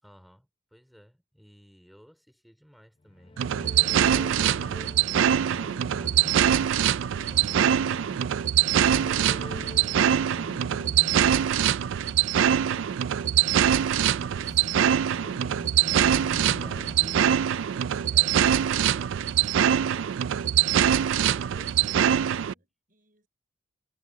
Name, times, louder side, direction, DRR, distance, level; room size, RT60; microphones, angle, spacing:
voice 1, 0.0-3.4 3.9-9.1 9.8-16.9 17.6-20.3 21.0-22.6, equal, ahead, 3.8 m, -54 dB
sound 1, 3.0-18.2, left 2 dB, 25° left, 0.5 m, -45 dB
sound 2, 3.4-22.5, right 9 dB, 80° right, 0.3 m, -23 dB
voice 2, 21.4-23.3, right 2 dB, 45° right, 5.9 m, -62 dB
head